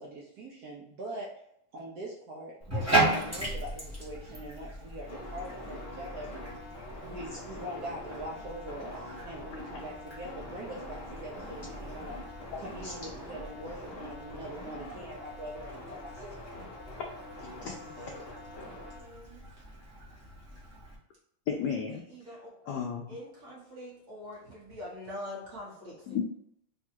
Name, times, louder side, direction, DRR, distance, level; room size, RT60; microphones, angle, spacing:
voice 1, 0.0-1.3 1.7-6.3 7.0-12.2 12.6-16.6, right 1 dB, 75° right, -3 dB, 0.8 m, -42 dB
Bathtub (filling or washing), 2.6-20.9, right 2 dB, 15° right, 0.6 m, -37 dB
sound 1, 5.1-19.0, left 1 dB, 60° left, 0.7 m, -45 dB
voice 2, 18.6-19.6 20.6-20.7 21.8-22.7 23.1-26.2, left 1 dB, 50° right, -5 dB, 1.6 m, -45 dB
voice 3, 21.5-22.0 22.7-23.1 26.1-26.2, left 7 dB, 90° left, 1 dB, 0.9 m, -32 dB
3.6 x 2.4 x 4.4 m, 0.75 s
omnidirectional pair, 2.3 m